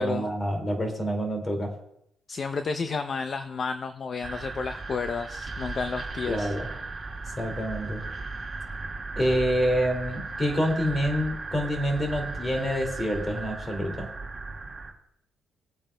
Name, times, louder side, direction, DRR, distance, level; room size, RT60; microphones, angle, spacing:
voice 1, 0.0-1.8 6.3-6.7 7.4-8.0 9.2-14.1, equal, 25° left, 3 dB, 2.4 m, -27 dB
voice 2, 2.3-6.5, left 5 dB, 45° left, 9 dB, 0.6 m, -31 dB
sound 1, 4.2-14.9, right 3 dB, 25° right, 1.9 m, -36 dB
21.0 x 8.8 x 2.3 m, 0.74 s
cardioid pair, 90°, 0 cm